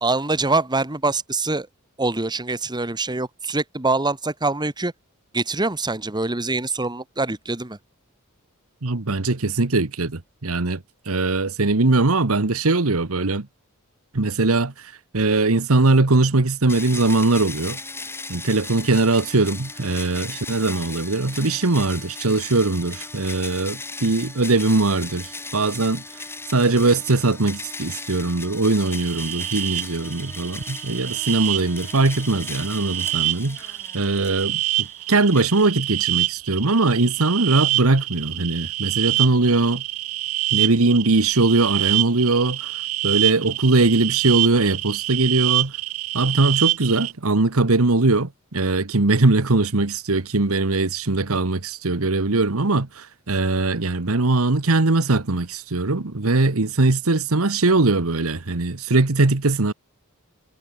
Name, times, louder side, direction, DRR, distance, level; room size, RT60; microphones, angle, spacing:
voice 1, 0.0-1.7 2.0-4.9 5.3-7.8, right 3 dB, 20° right, 1.8 m, -24 dB
voice 2, 8.8-13.5 14.1-17.8 18.3-26.0 26.5-33.7 33.9-39.8 40.5-42.7 43.0-45.7 46.1-59.7, right 3 dB, 75° right, 1.3 m, -21 dB
sound 1, 16.7-36.0, left 3 dB, 10° left, 2.0 m, -37 dB
sound 2, 28.9-47.1, right 16 dB, 90° right, 0.9 m, -26 dB
head